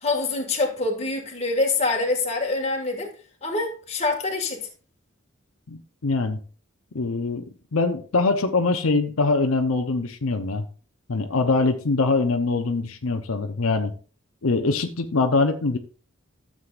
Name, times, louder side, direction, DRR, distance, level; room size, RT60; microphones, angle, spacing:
voice 1, 0.0-3.1 3.4-4.6, left 3 dB, 30° left, 1.9 m, -25 dB
voice 2, 5.7-6.4 6.9-7.4 7.7-10.6 11.1-13.9 14.4-15.8, left 3 dB, 85° left, 0.8 m, -23 dB
13.0 x 7.6 x 2.5 m
head